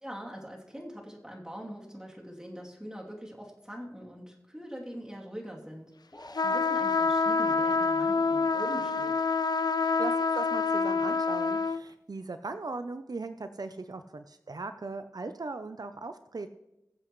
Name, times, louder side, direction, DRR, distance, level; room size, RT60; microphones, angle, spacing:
voice 1, 0.0-5.9 6.4-9.2, equal, 10° right, -3 dB, 2.9 m, -42 dB
sound 1, 6.1-6.7, left 1 dB, 45° left, 4.7 m, -47 dB
sound 2, 6.3-11.8, left 4 dB, 85° left, 0.4 m, -27 dB
voice 2, 9.8-16.5, right 3 dB, 75° right, 9 dB, 0.6 m, -39 dB
21.5 x 7.9 x 3.1 m, 0.92 s
wide cardioid pair, 45°, 7 cm